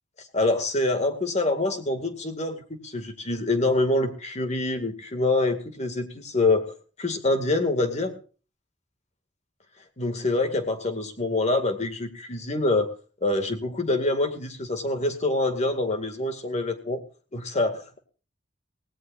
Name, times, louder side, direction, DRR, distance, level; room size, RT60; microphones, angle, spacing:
voice 1, 0.3-6.7 7.0-8.2 10.0-12.9 13.2-17.0 17.3-18.0, left 2 dB, 35° left, 7 dB, 2.0 m, -25 dB
18.0 x 17.0 x 2.5 m, 0.37 s
head